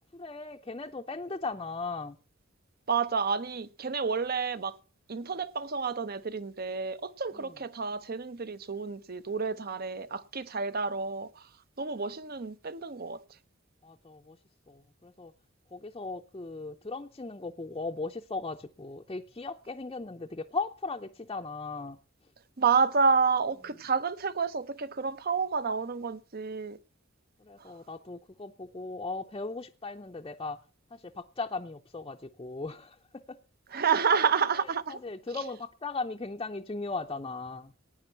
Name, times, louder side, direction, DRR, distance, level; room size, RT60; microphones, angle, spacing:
voice 1, 0.1-2.2 7.3-7.5 13.8-14.4 14.7-15.3 15.7-22.0 27.4-30.6 30.9-33.0 33.3-33.4 34.6-37.7, left 3 dB, 25° left, 0.6 m, -37 dB
voice 2, 2.9-4.8 5.1-11.5 11.8-13.2 22.6-26.8 27.6-27.7 33.7-35.0, right 5 dB, 50° right, 0.7 m, -29 dB
17.0 x 9.3 x 5.8 m
head